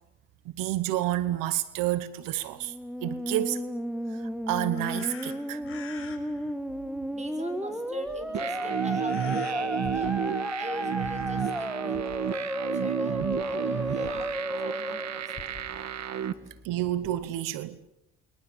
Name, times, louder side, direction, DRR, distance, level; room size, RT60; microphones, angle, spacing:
voice 1, 0.5-2.7 3.0-3.6 4.5-5.6 16.6-17.9, right 14 dB, 85° right, 1.1 m, -29 dB
Musical instrument, 2.6-15.9, equal, ahead, 1.4 m, -33 dB
sound 1, 4.7-6.5 8.1-8.2 8.6-9.5 9.8-10.7 11.0-12.9 13.2-16.3 17.0-17.2, left 6 dB, 40° left, 5.6 m, -48 dB
voice 2, 7.1-10.1 10.6-12.0 12.7-15.5 16.4-16.5, right 1 dB, 20° right, 6.3 m, -42 dB
sound 2, 8.3-16.3, right 9 dB, 55° right, 1.7 m, -32 dB
29.0 x 22.0 x 7.2 m
cardioid pair, 90°, 32 cm